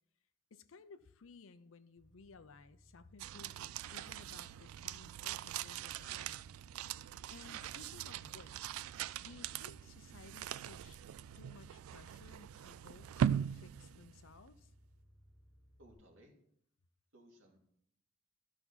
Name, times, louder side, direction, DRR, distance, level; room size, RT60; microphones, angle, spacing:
voice 1, 0.5-6.4 7.3-8.8 9.2-11.0 11.4-14.7, left 4 dB, 70° left, 13 dB, 0.6 m, -58 dB
sound 1, 2.0-15.9, equal, ahead, 3.9 m, -64 dB
sound 2, 3.2-14.6, right 9 dB, 85° right, 0.3 m, -41 dB
voice 2, 15.8-16.3 17.1-17.6, equal, 65° right, 0 dB, 2.3 m, -61 dB
12.5 x 5.8 x 4.1 m, 0.69 s
head